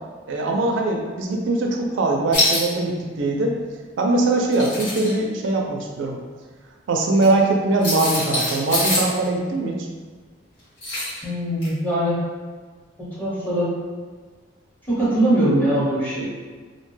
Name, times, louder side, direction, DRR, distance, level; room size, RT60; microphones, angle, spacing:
voice 1, 0.3-3.6 4.0-6.2 6.9-9.9, right 2 dB, 80° right, 1 dB, 0.4 m, -21 dB
sound 1, 2.3-2.7 4.4-5.1 7.2-7.3 7.8-9.1 10.8-11.2 11.6-11.7, left 1 dB, 75° left, 1.2 m, -24 dB
voice 2, 11.2-12.1 13.2-13.7 14.9-16.3, right 1 dB, 10° left, -9 dB, 0.9 m, -21 dB
2.6 x 2.1 x 3.1 m, 1.4 s
head